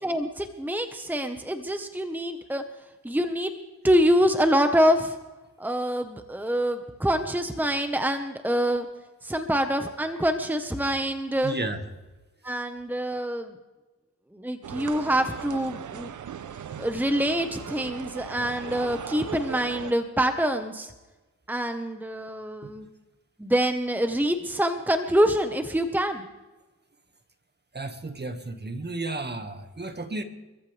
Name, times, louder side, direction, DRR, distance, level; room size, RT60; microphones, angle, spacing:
voice 1, 0.0-2.6 3.0-3.5 3.8-5.2 5.6-8.9 9.2-11.5 12.4-13.5 14.3-16.1 16.8-20.9 21.5-22.9 23.4-26.2, equal, 5° right, 7 dB, 1.4 m, -25 dB
voice 2, 11.4-11.8 22.6-22.7 27.7-30.2, right 2 dB, 30° right, 7 dB, 1.9 m, -33 dB
sound 1, 14.6-19.9, right 8 dB, 65° right, 0.9 m, -38 dB
25.5 x 14.5 x 3.6 m, 1.1 s
supercardioid pair, 45°, 32 cm